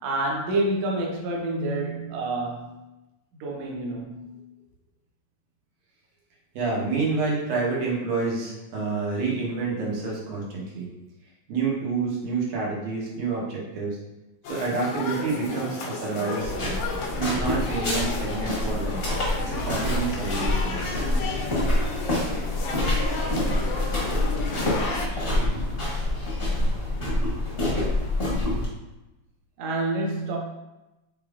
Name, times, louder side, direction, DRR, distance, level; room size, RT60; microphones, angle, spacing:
voice 1, 0.0-2.8 3.3-4.4 29.6-30.4, right 2 dB, 70° right, -1 dB, 1.7 m, -28 dB
voice 2, 6.5-10.9 11.5-14.0 14.5-16.8 17.2-19.1 19.3-20.8, right 4 dB, 90° right, -4 dB, 2.6 m, -28 dB
sound 1, 14.4-25.1, left 3 dB, 90° left, 1.3 m, -33 dB
sound 2, 16.4-28.6, left 1 dB, 60° left, 0.6 m, -26 dB
5.8 x 3.4 x 2.4 m, 0.99 s
omnidirectional pair, 3.4 m